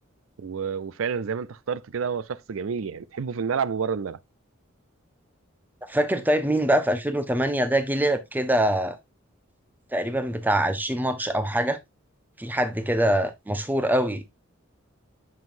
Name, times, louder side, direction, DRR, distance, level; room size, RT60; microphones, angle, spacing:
voice 1, 0.4-4.2, right 6 dB, 75° right, 0.4 m, -29 dB
voice 2, 5.9-9.0 9.9-11.8 12.4-14.2, right 1 dB, 10° right, 0.8 m, -24 dB
7.3 x 6.0 x 2.6 m
head